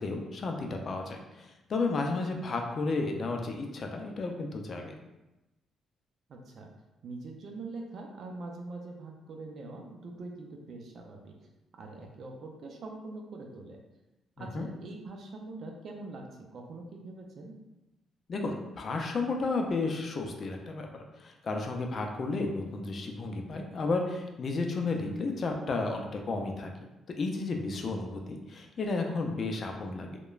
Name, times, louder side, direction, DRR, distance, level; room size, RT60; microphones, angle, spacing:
voice 1, 0.0-4.9 14.4-14.7 18.3-26.9 27.2-30.2, left 3 dB, 50° left, 3 dB, 0.4 m, -33 dB
voice 2, 6.3-6.7 7.0-11.4 11.8-13.8 14.4-16.2 16.5-17.5, right 3 dB, 60° right, 2 dB, 0.4 m, -43 dB
2.9 x 2.1 x 2.3 m, 1.0 s
cardioid pair, 90°, 0 cm